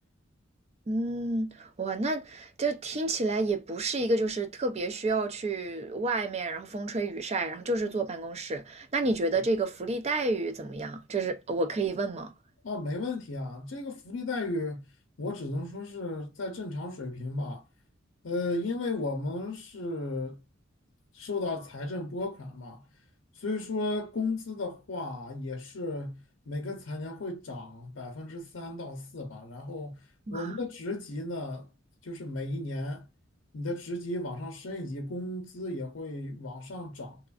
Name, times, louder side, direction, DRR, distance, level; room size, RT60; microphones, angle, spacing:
voice 1, 0.9-12.3 30.3-30.5, right 2 dB, 35° right, 0.5 m, -30 dB
voice 2, 12.6-14.9 15.2-17.6 18.2-20.4 21.1-22.8 23.3-26.2 26.5-30.0 30.3-31.7 32.0-33.1 33.5-37.2, left 2 dB, 75° left, 0.6 m, -35 dB
3.0 x 2.4 x 2.3 m
head